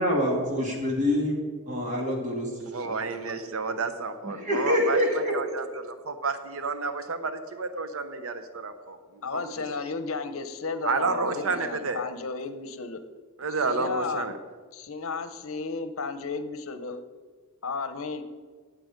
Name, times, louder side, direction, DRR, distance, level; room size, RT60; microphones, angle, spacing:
voice 1, 0.0-1.4 1.7-3.0 4.2-5.3, left 1 dB, 35° right, -1 dB, 2.8 m, -26 dB
voice 2, 2.7-9.0 9.3-9.8 10.8-12.0 13.4-14.4, right 4 dB, 75° right, 9 dB, 0.8 m, -30 dB
voice 3, 9.2-13.0 13.6-14.3 14.7-17.0 17.6-18.2, left 4 dB, 70° left, 11 dB, 0.8 m, -33 dB
18.0 x 7.6 x 5.2 m, 1.5 s
head